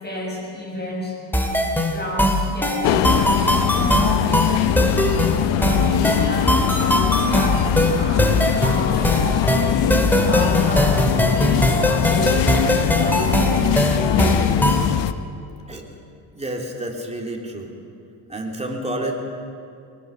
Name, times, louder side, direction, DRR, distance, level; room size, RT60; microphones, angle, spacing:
voice 1, 0.0-3.4 3.8-8.3 8.6-10.0 10.3-14.8, left 1 dB, 25° left, -1 dB, 7.1 m, -31 dB
sound 1, 1.3-14.9, equal, 5° left, 2.3 m, -20 dB
sound 2, 2.8-15.1, left 11 dB, 80° left, 0.9 m, -21 dB
voice 2, 16.3-17.8 18.3-19.2, right 1 dB, 15° right, 0 dB, 3.4 m, -29 dB
21.5 x 19.0 x 7.2 m, 2.5 s
cardioid pair, 110°, 43 cm